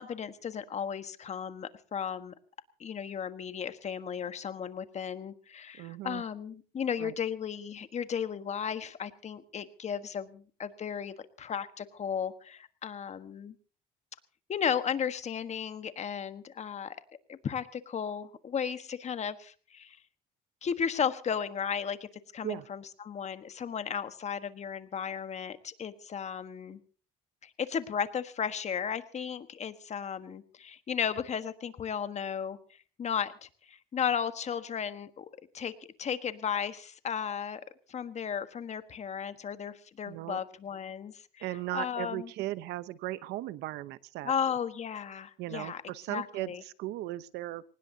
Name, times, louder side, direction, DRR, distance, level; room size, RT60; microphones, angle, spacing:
voice 1, 0.0-2.3 2.8-13.5 14.5-17.0 17.3-20.0 20.6-22.1 22.3-26.8 27.4-32.6 33.0-35.3 35.5-35.7 36.0-37.6 37.9-41.4 41.7-42.3 44.2-45.8 46.1-46.6, left 7 dB, 40° left, 11 dB, 1.4 m, -35 dB
voice 2, 5.8-6.2 7.0-7.1 22.4-22.7 40.1-40.4 41.4-44.5 45.4-47.6, right 15 dB, 85° right, 16 dB, 0.9 m, -37 dB
23.5 x 19.5 x 2.8 m, 0.39 s
cardioid pair, 110°, 17 cm